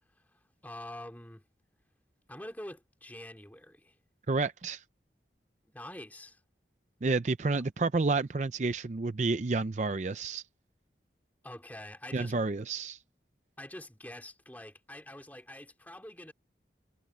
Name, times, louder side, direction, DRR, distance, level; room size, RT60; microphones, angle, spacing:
voice 1, 0.6-1.4 2.3-4.0 5.7-6.4 7.5-7.6 11.4-12.3 13.6-16.3, left 1 dB, 10° left, 2.8 m, -45 dB
voice 2, 4.3-4.8 7.0-10.4 12.1-13.0, right 3 dB, 40° right, 0.5 m, -30 dB
head